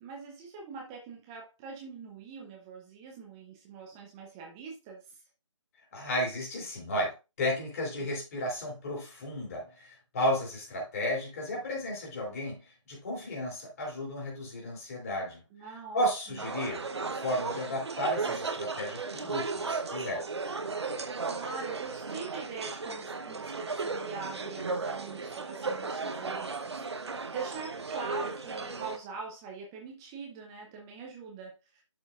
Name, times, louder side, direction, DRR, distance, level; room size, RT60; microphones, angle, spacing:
voice 1, 0.0-5.2 8.0-8.1 15.5-16.4 21.3-31.8, right 5 dB, 10° right, 0.5 m, -43 dB
voice 2, 5.9-12.6 12.9-15.4 15.9-16.8 17.1-20.3, equal, 30° left, 2.9 m, -33 dB
sound 1, 16.4-29.0, right 4 dB, 55° right, 0.9 m, -35 dB
11.5 x 4.4 x 2.4 m
figure-of-eight pair, 155°, 17 cm